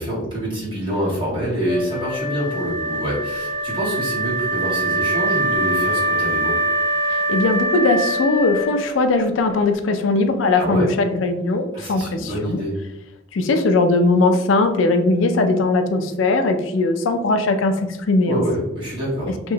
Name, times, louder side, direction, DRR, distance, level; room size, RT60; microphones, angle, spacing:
voice 1, 0.0-6.5 10.5-10.9 11.7-12.7 18.2-19.3, equal, 25° right, -8 dB, 1.5 m, -26 dB
Wind instrument woodwind instrument, 1.6-9.2, right 1 dB, 75° right, 1.1 m, -23 dB
voice 2, 7.1-12.6 13.3-18.4 19.4-19.5, left 3 dB, 80° left, 7 dB, 0.4 m, -19 dB
3.0 x 2.8 x 2.6 m, 0.93 s
head